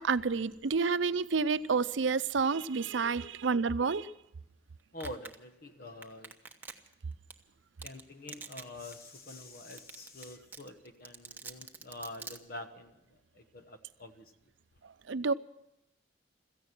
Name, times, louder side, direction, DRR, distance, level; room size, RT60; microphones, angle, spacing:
voice 1, 0.0-4.1 15.1-15.3, right 4 dB, 90° right, 0.6 m, -29 dB
voice 2, 4.9-6.3 7.8-14.5, left 1 dB, 55° left, 1.1 m, -46 dB
Domestic sounds home sounds, 5.0-5.3 6.0-6.9 7.3-7.4 7.8-8.0 8.3-8.6 8.9-9.0 9.4-9.5 9.7-10.2 10.5-12.4, right 4 dB, 10° right, 1.0 m, -44 dB
16.5 x 14.5 x 6.0 m
head